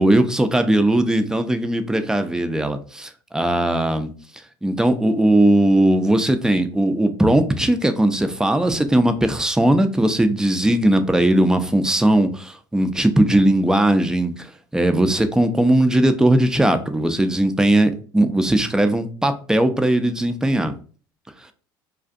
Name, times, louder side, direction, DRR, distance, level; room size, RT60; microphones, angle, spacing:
voice 1, 0.0-4.1 4.6-20.8, right 1 dB, 5° right, 0.4 m, -18 dB
2.5 x 2.4 x 2.4 m
hypercardioid pair, 70°, 11 cm